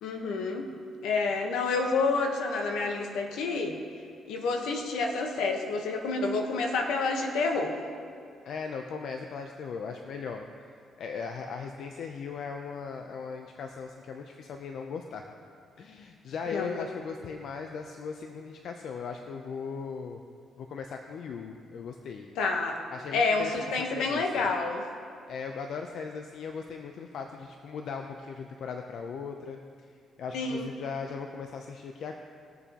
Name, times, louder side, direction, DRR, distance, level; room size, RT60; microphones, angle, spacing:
voice 1, 0.0-0.7 1.0-3.8 4.3-7.7 16.5-16.8 22.4-22.8 23.1-24.8 30.3-30.7, left 3 dB, 85° left, 3 dB, 1.2 m, -28 dB
voice 2, 8.4-10.5 11.0-15.3 15.8-20.2 20.6-22.3 22.9-23.5 23.9-24.5 25.3-29.6 29.9-32.2, left 5 dB, 65° left, 4 dB, 0.6 m, -38 dB
19.5 x 7.0 x 3.0 m, 2.3 s
cardioid pair, 90°, 0 cm